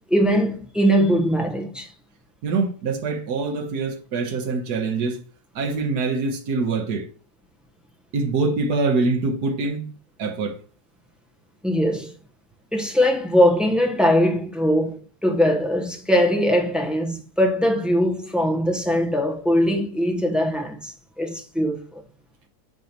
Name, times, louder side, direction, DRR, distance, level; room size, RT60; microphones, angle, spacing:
voice 1, 0.1-1.9 11.6-12.1 12.7-22.0, equal, ahead, 0.8 m, -21 dB
voice 2, 2.4-5.2 5.5-7.0 8.1-9.9 10.2-10.5, right 3 dB, 80° right, 1.6 m, -24 dB
8.4 x 5.2 x 3.0 m
omnidirectional pair, 1.7 m